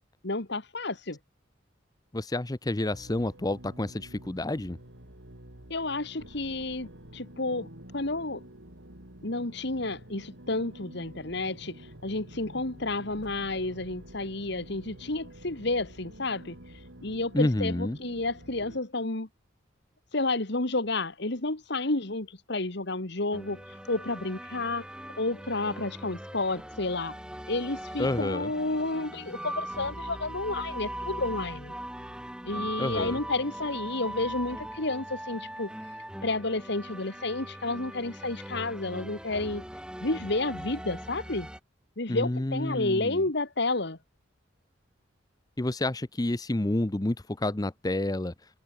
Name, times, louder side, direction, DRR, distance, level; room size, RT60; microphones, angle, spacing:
voice 1, 0.2-1.2 5.7-7.7 7.9-8.4 9.2-16.6 17.0-19.3 20.1-23.6 23.9-24.8 25.2-27.1 27.5-31.7 32.4-35.7 36.2-39.6 40.0-41.5 42.0-44.0, left 2 dB, 60° left, 2.1 m, -31 dB
voice 2, 2.1-4.8 17.3-18.0 28.0-28.5 32.8-33.2 42.1-43.2 45.6-48.3, left 1 dB, 20° left, 0.7 m, -29 dB
sound 1, 2.9-18.8, right 1 dB, 75° right, 4.7 m, -49 dB
sound 2, 23.3-41.6, right 1 dB, 5° right, 3.4 m, -40 dB
head